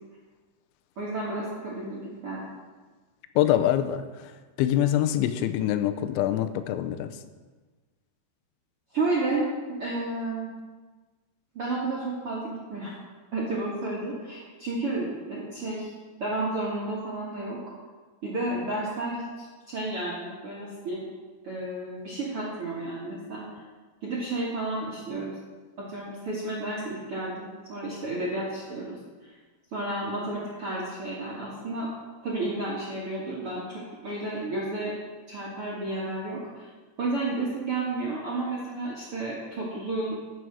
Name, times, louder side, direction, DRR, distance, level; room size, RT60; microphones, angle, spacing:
voice 1, 0.9-2.5 8.9-9.5 9.8-10.5 11.5-12.9 13.3-15.9 16.2-17.6 18.2-21.1 21.4-23.6 24.0-25.3 25.9-29.0 29.2-29.3 29.7-31.9 32.2-34.9 35.3-36.7 37.0-40.2, right 2 dB, 55° right, -5 dB, 1.6 m, -31 dB
voice 2, 3.4-4.3 4.6-7.2, left 11 dB, 85° left, 8 dB, 2.9 m, -25 dB
14.5 x 6.4 x 6.1 m, 1.3 s
omnidirectional pair, 5.5 m